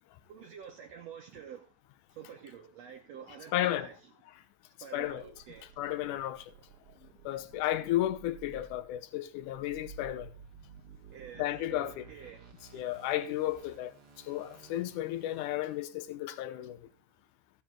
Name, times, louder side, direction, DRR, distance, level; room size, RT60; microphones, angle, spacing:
voice 1, 0.3-1.7 2.1-4.0 4.8-5.7 11.1-12.5 16.6-16.7, right 7 dB, 70° right, 1.6 m, -48 dB
voice 2, 3.5-3.9 4.9-5.3 5.8-6.5 7.0-10.3 11.4-12.0 12.7-16.9, left 14 dB, 75° left, 2.0 m, -33 dB
sound 1, 5.0-15.8, right 7 dB, 55° right, 1.9 m, -55 dB
14.5 x 7.2 x 4.5 m
omnidirectional pair, 4.2 m